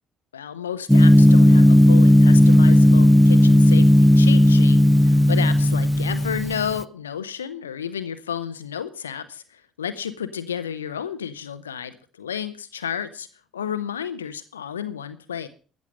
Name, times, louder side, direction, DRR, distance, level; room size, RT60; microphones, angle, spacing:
voice 1, 0.3-13.3 13.5-15.5, left 8 dB, 85° left, 12 dB, 0.7 m, -32 dB
Gong, 0.9-6.8, equal, ahead, 0.6 m, -14 dB
14.0 x 7.3 x 6.5 m, 0.37 s
figure-of-eight pair, 50°, 0 cm